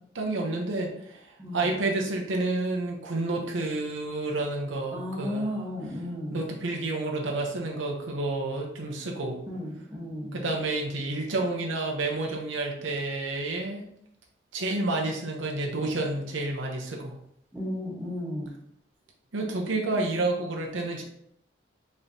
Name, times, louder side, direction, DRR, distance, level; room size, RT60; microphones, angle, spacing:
voice 1, 0.1-5.5 6.3-9.4 10.3-13.8 14.5-17.1 19.3-21.0, right 2 dB, 90° right, 0 dB, 0.8 m, -30 dB
voice 2, 1.4-1.7 4.9-6.4 9.5-10.4 17.5-18.5, left 1 dB, 10° right, -6 dB, 1.1 m, -34 dB
4.8 x 3.2 x 2.8 m, 0.72 s
head